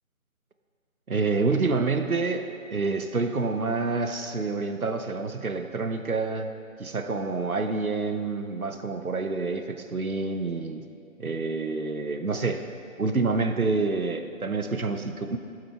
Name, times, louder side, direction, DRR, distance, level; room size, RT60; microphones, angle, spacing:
voice 1, 1.1-6.5 6.8-10.8 11.2-12.6 13.0-15.4, right 3 dB, 85° right, 7 dB, 0.9 m, -27 dB
12.5 x 7.9 x 4.4 m, 2.4 s
figure-of-eight pair, 165°, 42 cm